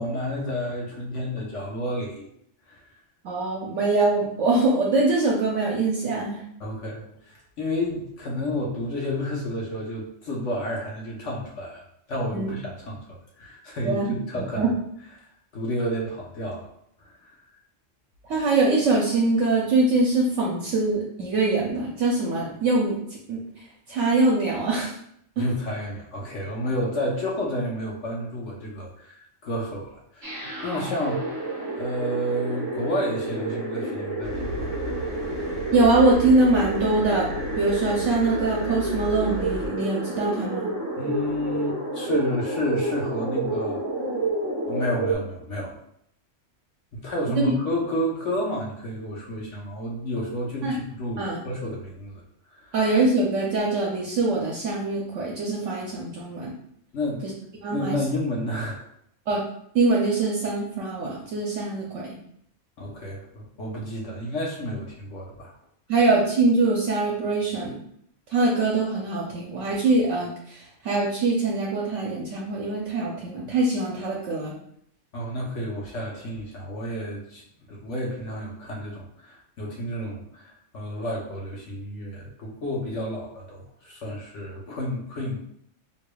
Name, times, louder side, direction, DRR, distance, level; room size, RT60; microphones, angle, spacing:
voice 1, 0.0-2.3 2.7-3.0 6.6-11.8 12.1-14.7 15.2-15.3 15.5-16.7 17.0-17.3 25.4-30.4 30.6-31.3 31.8-34.7 41.0-43.8 44.7-45.7 46.9-52.2 52.5-52.7 56.9-57.2 57.7-58.8 62.8-65.5 75.1-77.4 77.7-85.4, left 1 dB, 75° left, -2 dB, 1.1 m, -30 dB
voice 2, 3.2-6.4 12.3-12.5 13.8-14.1 14.4-14.7 18.3-23.0 23.3-23.4 23.9-24.9 25.4-25.5 30.7-30.8 35.7-37.3 37.6-40.7 50.6-50.7 51.2-51.4 52.7-56.5 57.2-57.3 57.6-58.0 59.3-59.4 59.7-62.1 65.9-67.8 68.3-74.6, right 3 dB, 75° right, -3 dB, 1.0 m, -23 dB
sound 1, 30.2-45.1, right 2 dB, 25° right, 1.0 m, -30 dB
sound 2, 34.2-39.7, left 1 dB, 50° left, 1.6 m, -35 dB
4.8 x 2.9 x 2.3 m, 0.70 s
omnidirectional pair, 1.3 m